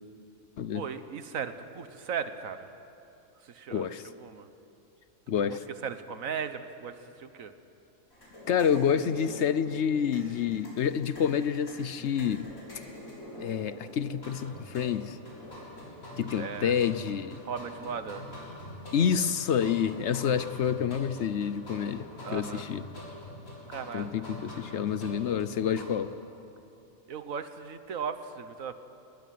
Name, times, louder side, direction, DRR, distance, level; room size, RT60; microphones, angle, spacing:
voice 1, 0.7-2.7 3.4-4.5 5.5-7.5 16.4-16.7 17.4-18.3 22.2-22.6 23.7-24.3 27.1-28.7, right 7 dB, 75° right, 10 dB, 1.5 m, -37 dB
voice 2, 3.7-4.0 5.3-5.6 8.5-12.5 13.4-15.2 16.2-17.4 18.9-22.1 22.3-22.8 23.9-26.1, left 8 dB, 60° left, 14 dB, 0.9 m, -28 dB
sound 1, 8.1-25.9, left 1 dB, 85° left, 7.3 m, -45 dB
21.5 x 19.5 x 9.3 m, 2.8 s
omnidirectional pair, 1.4 m